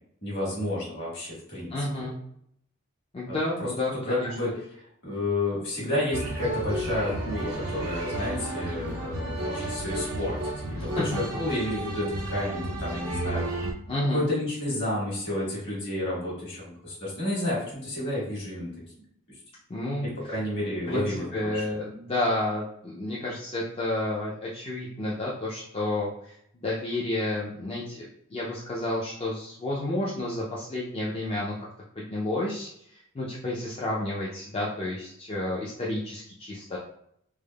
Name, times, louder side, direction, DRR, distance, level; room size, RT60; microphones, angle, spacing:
voice 1, 0.2-2.1 3.3-3.7 4.0-13.5 14.1-18.7 20.0-21.8, left 1 dB, 50° left, -6 dB, 1.5 m, -31 dB
voice 2, 1.7-2.2 3.1-4.3 10.7-11.0 13.9-14.2 19.7-20.1 20.6-21.1 21.3-31.7 32.0-36.8, left 1 dB, 25° left, -6 dB, 0.4 m, -31 dB
sound 1, 6.1-13.7, right 1 dB, 80° right, 0.6 m, -32 dB
3.3 x 2.0 x 2.2 m, 0.72 s
head